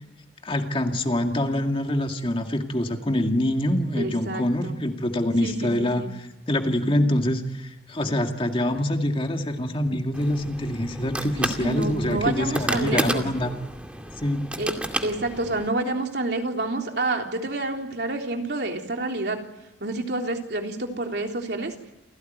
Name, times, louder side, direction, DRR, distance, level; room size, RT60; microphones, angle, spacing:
voice 1, 0.4-13.5 14.2-14.5, left 1 dB, 30° left, 4 dB, 2.2 m, -25 dB
voice 2, 3.9-4.8 5.4-6.1 11.4-13.2 14.6-14.7 15.0-19.4 19.8-21.7, right 2 dB, 65° right, 3 dB, 3.6 m, -28 dB
sound 1, 10.1-15.7, right 1 dB, 5° right, 2.3 m, -32 dB
29.0 x 17.0 x 9.4 m, 0.93 s
head